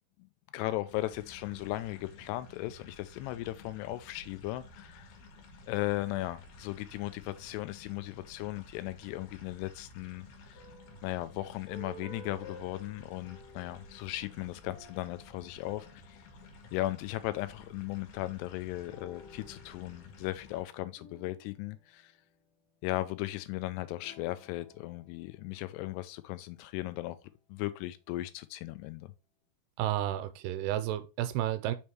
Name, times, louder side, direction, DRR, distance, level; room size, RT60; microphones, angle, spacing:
voice 1, 0.5-5.1 5.7-10.6 11.0-16.2 16.7-22.1 22.8-27.2 27.5-29.1, left 17 dB, 90° left, 2.7 m, -37 dB
sound 1, 0.9-20.6, left 2 dB, 70° left, 3.1 m, -54 dB
sound 2, 10.5-16.5 18.8-22.7 23.9-26.6, equal, 55° left, 1.7 m, -55 dB
voice 2, 29.8-31.7, right 13 dB, 85° right, 2.5 m, -31 dB
6.4 x 3.5 x 4.4 m
omnidirectional pair, 4.8 m